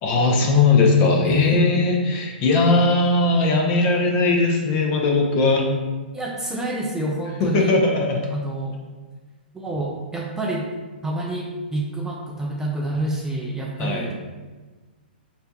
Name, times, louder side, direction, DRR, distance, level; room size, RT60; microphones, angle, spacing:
voice 1, 0.0-5.7 7.4-8.2 13.8-14.1, left 3 dB, 35° left, 1 dB, 0.6 m, -19 dB
voice 2, 1.2-1.6 6.1-7.7 8.3-8.8 9.5-10.7 11.0-14.1, right 2 dB, 10° right, -1 dB, 0.3 m, -27 dB
4.3 x 2.7 x 2.3 m, 1.3 s
hypercardioid pair, 130°, 6 cm